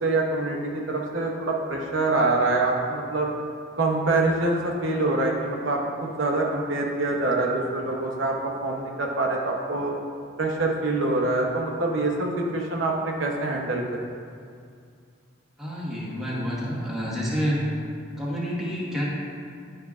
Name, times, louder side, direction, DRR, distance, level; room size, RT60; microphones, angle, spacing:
voice 1, 0.0-3.3 3.8-10.0 10.4-14.0, right 2 dB, 65° right, -1 dB, 0.8 m, -25 dB
voice 2, 15.6-17.6 18.2-19.0, equal, ahead, -7 dB, 1.2 m, -28 dB
10.0 x 5.3 x 2.4 m, 2.3 s
head